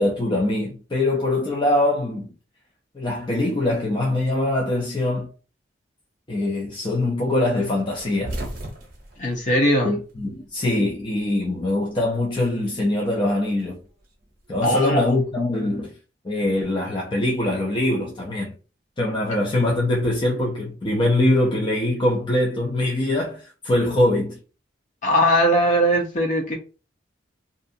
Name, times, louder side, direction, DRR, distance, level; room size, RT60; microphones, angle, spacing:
voice 1, 0.0-2.3 2.9-5.3 6.3-8.4 9.8-13.8 14.5-15.9 16.2-18.6 19.0-24.4, left 1 dB, 25° left, 0.5 m, -23 dB
sound 1, 7.9-10.5 10.8-11.8 13.0-14.5, right 1 dB, 50° right, 0.8 m, -36 dB
voice 2, 9.2-9.9 14.6-15.1 25.0-26.6, equal, 40° left, 0.8 m, -20 dB
2.6 x 2.3 x 2.6 m
head